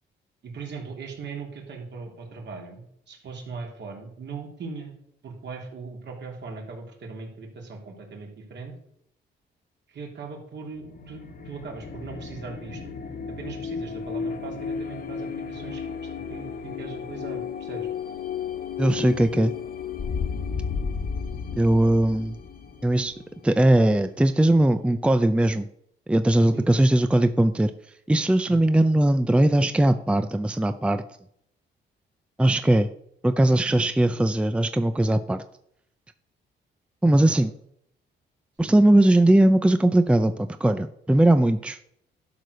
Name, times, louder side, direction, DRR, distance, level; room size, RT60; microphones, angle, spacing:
voice 1, 0.4-4.9 5.2-8.8 9.9-12.8 13.3-15.8 16.3-17.9 26.5-26.7 28.4-28.6 37.3-37.5 38.6-38.7, right 4 dB, 60° right, 0 dB, 3.3 m, -39 dB
sound 1, 10.7-24.2, left 6 dB, 50° left, 1.5 m, -33 dB
voice 2, 18.8-19.5 21.6-22.4 22.8-23.1 23.4-25.7 26.1-27.7 28.1-31.0 32.4-32.9 33.2-35.4 37.0-37.5 38.6-41.8, right 1 dB, 5° right, 10 dB, 0.6 m, -20 dB
12.0 x 4.8 x 6.7 m, 0.71 s
cardioid pair, 90°, 20 cm